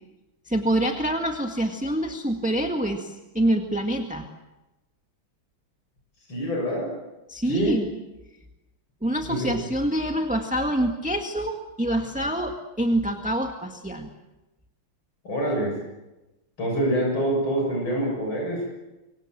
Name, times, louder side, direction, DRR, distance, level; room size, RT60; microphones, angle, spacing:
voice 1, 0.4-4.3 7.3-7.9 9.0-14.1, right 1 dB, 5° right, 3 dB, 1.6 m, -26 dB
voice 2, 6.3-6.9 7.5-7.8 9.3-9.5 15.2-15.8 16.6-18.7, right 1 dB, 70° left, 0 dB, 7.6 m, -25 dB
25.0 x 24.5 x 7.6 m, 1.0 s
omnidirectional pair, 2.3 m